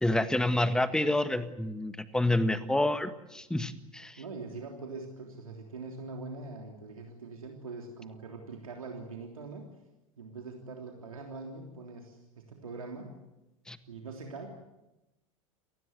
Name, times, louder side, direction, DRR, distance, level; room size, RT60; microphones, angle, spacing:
voice 1, 0.0-4.2 13.7-13.8, left 1 dB, 5° left, 12 dB, 1.7 m, -28 dB
voice 2, 4.2-9.7 10.2-13.1 13.9-14.5, right 3 dB, 80° right, 2 dB, 3.4 m, -43 dB
28.5 x 19.0 x 8.1 m, 0.97 s
figure-of-eight pair, 90°, 18 cm